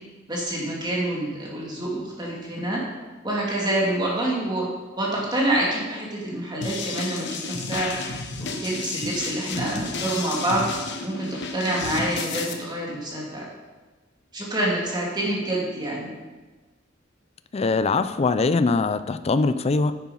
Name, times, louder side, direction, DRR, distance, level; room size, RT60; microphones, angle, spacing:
voice 1, 0.3-2.8 3.2-4.7 5.0-7.9 8.4-10.6 11.0-13.5 14.3-16.1, right 1 dB, 20° right, -4 dB, 2.1 m, -27 dB
sound 1, 6.6-12.5, left 4 dB, 60° left, 1.1 m, -32 dB
voice 2, 17.5-20.0, left 3 dB, 30° left, 12 dB, 0.4 m, -22 dB
9.6 x 7.2 x 5.5 m, 1.3 s
head